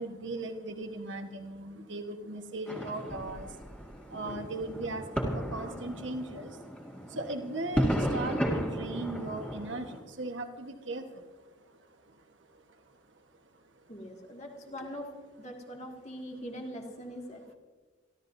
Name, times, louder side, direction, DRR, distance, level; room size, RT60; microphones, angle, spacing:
voice 1, 0.0-3.8 4.1-13.2 13.5-13.6, right 2 dB, 65° right, 5 dB, 1.3 m, -39 dB
sound 1, 2.7-10.0, equal, 5° left, 1.9 m, -34 dB
voice 2, 13.9-15.1 15.4-17.5, equal, 35° left, 1 dB, 2.1 m, -42 dB
27.5 x 13.0 x 2.7 m, 1.4 s
head